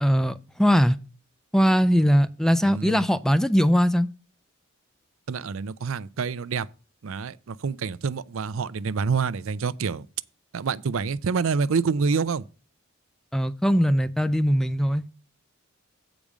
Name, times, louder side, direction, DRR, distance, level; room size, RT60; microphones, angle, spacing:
voice 1, 0.0-1.0 1.5-4.1 13.3-15.1, equal, ahead, 0.4 m, -21 dB
voice 2, 2.6-3.0 5.3-6.7 7.0-10.1 10.5-12.5, right 5 dB, 65° right, 0.5 m, -27 dB
8.5 x 5.1 x 6.1 m
head